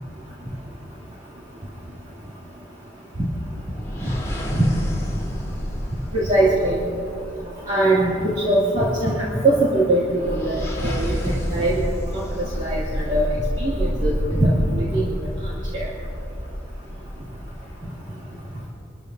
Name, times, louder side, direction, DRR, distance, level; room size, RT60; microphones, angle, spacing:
sound 1, 3.5-7.9 10.0-18.0, equal, 15° left, 3.3 m, -29 dB
voice 1, 6.1-6.8 7.7-9.2 9.4-13.3 13.6-15.1 15.7-15.9, right 1 dB, 40° right, -8 dB, 2.5 m, -21 dB
27.0 x 14.0 x 2.7 m, 2.8 s
head